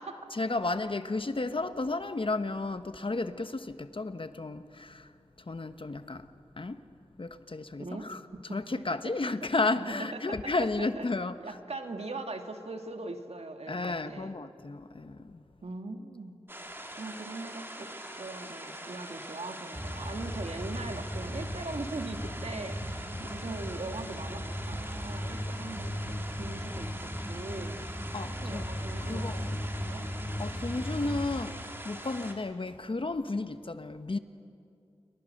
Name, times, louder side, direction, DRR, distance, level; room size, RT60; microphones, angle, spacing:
voice 1, 0.3-5.1 5.5-6.3 6.6-6.8 7.2-8.2 8.5-11.3 13.7-15.4 28.1-28.6 29.1-29.5 30.4-34.2, left 3 dB, 55° left, 1.1 m, -33 dB
voice 2, 7.8-8.6 9.0-9.1 9.8-11.1 11.4-14.4 15.6-16.4 16.7-30.1, right 2 dB, 75° right, 2.0 m, -41 dB
sound 1, 16.5-32.3, right 1 dB, 20° right, 2.9 m, -43 dB
sound 2, 19.7-31.4, equal, 10° left, 4.8 m, -37 dB
sound 3, 20.9-21.3 22.8-23.2 24.7-25.1, right 2 dB, 50° right, 4.9 m, -44 dB
28.0 x 23.5 x 6.6 m
wide cardioid pair, 45°, 11 cm